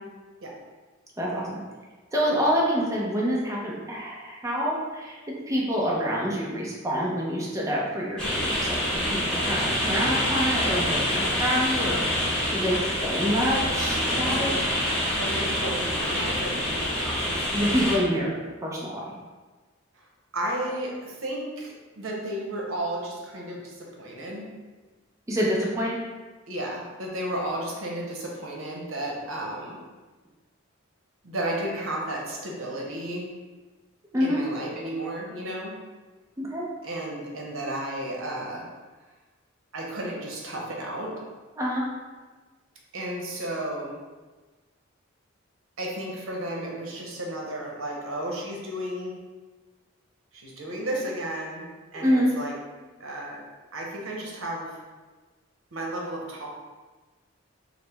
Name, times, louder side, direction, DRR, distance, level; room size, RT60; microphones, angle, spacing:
voice 1, 1.2-1.6 2.1-5.2 5.5-12.0 12.5-14.6 17.5-18.3 18.6-19.0 25.3-26.0 34.1-34.4 36.4-36.7 41.6-41.8 52.0-52.3, equal, 15° right, -4 dB, 0.6 m, -26 dB
sound 1, 8.2-18.0, equal, 5° left, 1.2 m, -26 dB
voice 2, 15.2-17.5 19.9-20.0 20.3-24.5 26.5-29.8 31.2-33.3 34.2-35.7 36.8-38.6 39.7-41.1 42.9-43.9 45.8-49.1 50.3-51.6 51.9-52.5 53.0-53.4 53.7-54.7 55.7-56.5, right 1 dB, 80° right, -2 dB, 0.8 m, -33 dB
4.8 x 2.1 x 3.4 m, 1.3 s
head